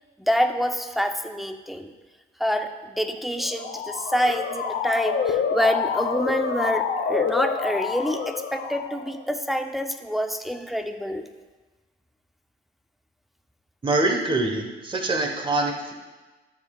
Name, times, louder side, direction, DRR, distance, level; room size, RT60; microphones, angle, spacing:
voice 1, 0.2-1.9 2.4-11.3, equal, ahead, 5 dB, 0.6 m, -26 dB
Motor vehicle (road) / Siren, 3.3-9.2, left 6 dB, 70° left, 1.0 m, -27 dB
voice 2, 13.8-15.9, right 2 dB, 25° right, 3 dB, 1.2 m, -24 dB
13.0 x 7.4 x 2.4 m, 1.2 s
cardioid pair, 90°, 20 cm